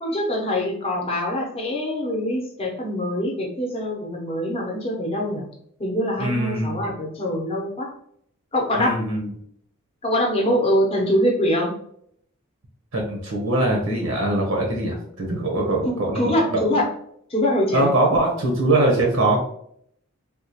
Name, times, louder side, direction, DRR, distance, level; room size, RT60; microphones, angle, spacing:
voice 1, 0.0-5.4 5.8-7.9 8.5-9.0 10.0-11.7 15.8-16.9 17.3-17.9, equal, 25° left, -1 dB, 0.7 m, -23 dB
voice 2, 6.2-6.8 8.8-9.3 12.9-16.6 17.7-19.4, right 2 dB, 70° right, 0 dB, 0.8 m, -22 dB
3.6 x 2.3 x 2.8 m, 0.68 s
head